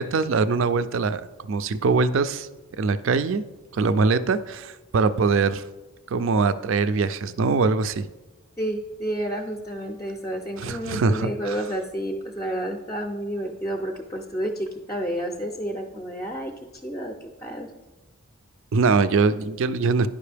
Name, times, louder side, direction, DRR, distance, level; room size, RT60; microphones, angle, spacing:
voice 1, 0.0-2.5 2.8-3.4 3.7-5.6 6.1-8.0 10.6-11.6 18.7-20.1, right 4 dB, 70° right, 13 dB, 0.4 m, -22 dB
voice 2, 8.6-16.5 16.8-17.7, right 1 dB, 15° left, 3 dB, 0.4 m, -30 dB
10.5 x 5.2 x 3.4 m, 1.1 s
head